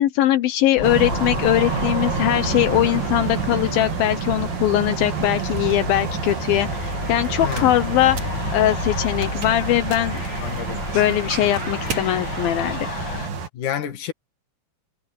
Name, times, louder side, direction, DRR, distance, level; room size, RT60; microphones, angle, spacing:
voice 1, 0.0-8.2 8.5-10.4 10.9-12.8, left 13 dB, 80° left, 2.8 m, -21 dB
sound 1, 0.8-13.3, left 5 dB, 40° left, 1.7 m, -32 dB
sound 2, 0.8-13.5, right 7 dB, 75° right, 4.5 m, -29 dB
sound 3, 5.9-12.1, right 4 dB, 45° right, 5.0 m, -40 dB
voice 2, 7.4-7.7 10.4-10.8 13.5-14.1, left 10 dB, 60° left, 3.4 m, -28 dB
omnidirectional pair, 4.1 m